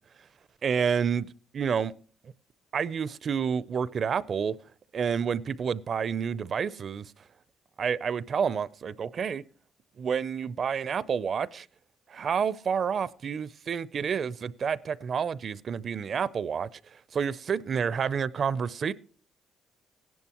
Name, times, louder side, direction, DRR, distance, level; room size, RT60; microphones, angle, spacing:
voice 1, 0.6-1.2 1.5-1.9 2.7-4.6 4.9-7.1 7.8-9.4 10.0-11.7 12.1-16.7 17.1-18.9, right 7 dB, 50° right, 0.5 m, -29 dB
16.5 x 11.0 x 2.9 m
cardioid pair, 90°, 0 cm